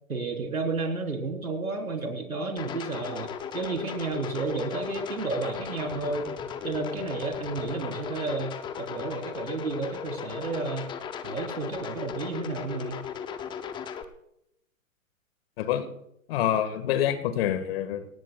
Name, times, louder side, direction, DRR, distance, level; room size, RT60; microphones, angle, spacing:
voice 1, 0.1-6.3 6.6-10.9 11.2-13.1, right 3 dB, 85° right, 3 dB, 4.1 m, -32 dB
sound 1, 2.6-14.0, left 7 dB, 10° left, 0.7 m, -36 dB
voice 2, 15.6-15.9 16.3-18.1, left 10 dB, 45° left, 9 dB, 1.8 m, -26 dB
26.0 x 18.0 x 2.4 m, 0.79 s
hypercardioid pair, 125°, 42 cm